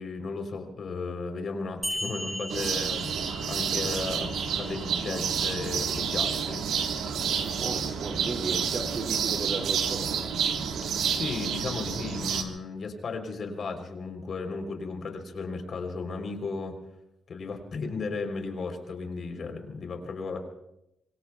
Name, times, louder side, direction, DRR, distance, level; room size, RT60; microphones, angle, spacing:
voice 1, 0.0-7.1 11.1-16.7 17.3-20.4, left 4 dB, 55° left, 5 dB, 3.5 m, -35 dB
sound 1, 1.8-6.8, equal, 5° right, 2.2 m, -39 dB
sound 2, 2.5-12.4, right 7 dB, 85° right, 1.5 m, -29 dB
voice 2, 7.6-10.3, right 3 dB, 50° right, 2 dB, 2.6 m, -35 dB
25.0 x 24.5 x 2.3 m, 0.87 s
cardioid pair, 85°, 0 cm